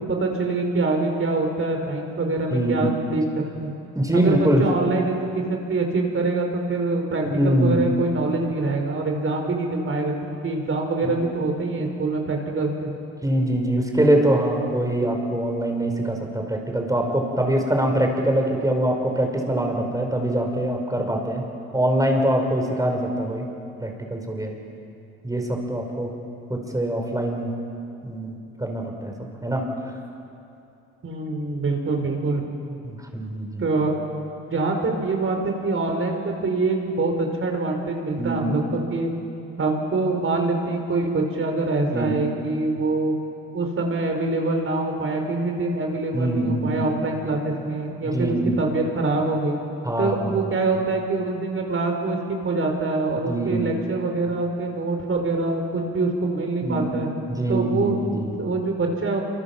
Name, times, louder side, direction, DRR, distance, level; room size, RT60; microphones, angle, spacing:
voice 1, 0.1-3.7 4.1-12.9 31.0-32.4 33.6-34.0 34.5-39.1 39.6-43.1 43.5-49.6 50.0-57.1 57.5-59.2, right 3 dB, 45° right, 2 dB, 5.0 m, -25 dB
voice 2, 2.5-2.9 3.9-4.7 7.2-7.8 11.0-11.1 13.2-21.4 21.7-23.5 23.8-24.5 25.2-26.1 26.5-27.5 28.0-28.3 28.6-29.7 32.8-33.6 38.2-38.6 41.9-42.1 46.1-46.8 48.0-48.6 49.8-50.5 53.3-53.7 56.6-57.0 57.3-58.3, right 1 dB, 10° right, 2 dB, 5.3 m, -23 dB
27.0 x 25.5 x 7.4 m, 2.7 s
cardioid pair, 90°, 30 cm